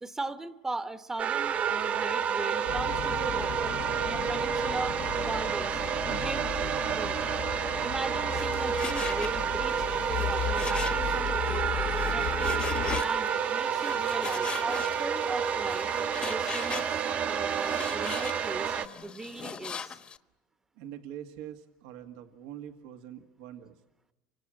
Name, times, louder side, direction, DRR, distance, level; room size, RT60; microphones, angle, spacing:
voice 1, 0.0-5.8 6.1-6.5 6.9-7.2 7.8-15.9 16.3-18.7 19.0-20.0, right 2 dB, 15° right, 10 dB, 1.0 m, -39 dB
sound 1, 1.2-18.9, right 8 dB, 40° right, 1.3 m, -29 dB
sound 2, 2.7-13.0, left 11 dB, 65° left, 0.9 m, -36 dB
Frying (food), 8.3-20.2, left 6 dB, 30° left, 1.1 m, -41 dB
voice 2, 20.8-23.8, right 10 dB, 80° right, 6 dB, 1.9 m, -44 dB
29.5 x 25.0 x 7.7 m, 0.99 s
supercardioid pair, 125°, 4 cm